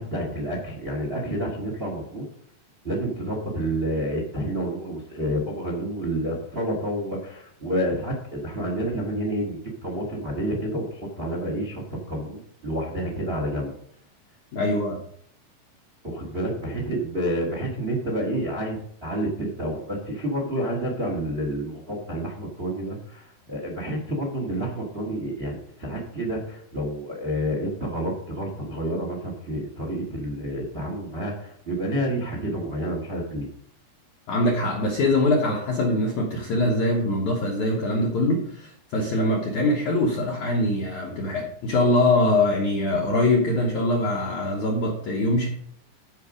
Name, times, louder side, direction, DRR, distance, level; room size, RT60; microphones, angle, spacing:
voice 1, 0.0-2.2 2.8-13.7 16.0-33.5, right 1 dB, 50° right, 0 dB, 0.6 m, -29 dB
voice 2, 14.5-15.0 34.3-45.5, left 1 dB, 75° left, -1 dB, 1.7 m, -23 dB
13.0 x 5.3 x 5.0 m, 0.66 s
omnidirectional pair, 5.2 m